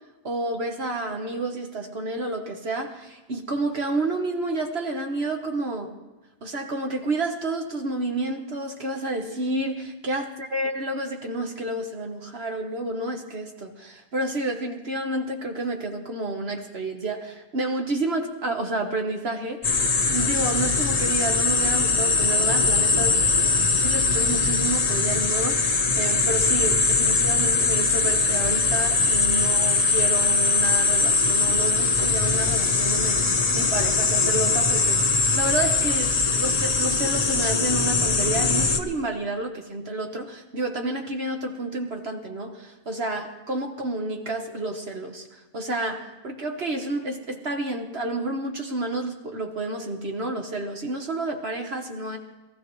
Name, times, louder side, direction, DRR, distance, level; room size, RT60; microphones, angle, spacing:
voice 1, 0.2-5.9 6.4-33.2 33.5-52.2, right 2 dB, 45° right, 3 dB, 1.3 m, -30 dB
sound 1, 19.6-38.8, left 4 dB, 35° left, 0.7 m, -21 dB
22.0 x 14.5 x 3.2 m, 1.1 s
omnidirectional pair, 1.6 m